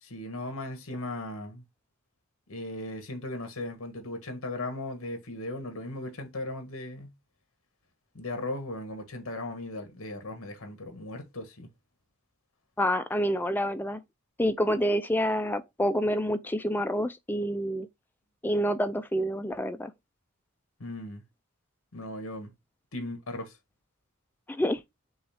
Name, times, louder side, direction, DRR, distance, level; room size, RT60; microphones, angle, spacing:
voice 1, 0.0-1.6 2.5-7.1 8.1-11.7 20.8-21.2 21.9-22.5 22.9-23.6, left 1 dB, 65° left, 1.3 m, -37 dB
voice 2, 12.8-14.0 14.4-17.9 18.4-19.9 24.5-24.8, equal, 10° left, 0.3 m, -27 dB
6.2 x 2.4 x 3.4 m
head